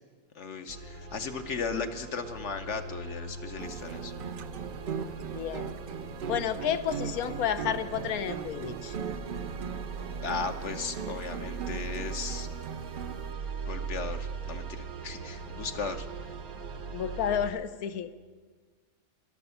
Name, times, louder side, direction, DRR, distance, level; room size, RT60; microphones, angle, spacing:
voice 1, 0.3-4.1 10.2-12.5 13.7-16.1, left 5 dB, 60° left, 7 dB, 1.0 m, -36 dB
sound 1, 0.7-17.5, right 5 dB, 85° right, 1.4 m, -40 dB
sound 2, 3.6-13.3, right 7 dB, 65° right, 0.5 m, -39 dB
voice 2, 5.3-5.7 6.3-8.9 16.9-18.1, left 9 dB, 90° left, 12 dB, 1.2 m, -31 dB
12.0 x 12.0 x 6.9 m, 1.4 s
omnidirectional pair, 1.5 m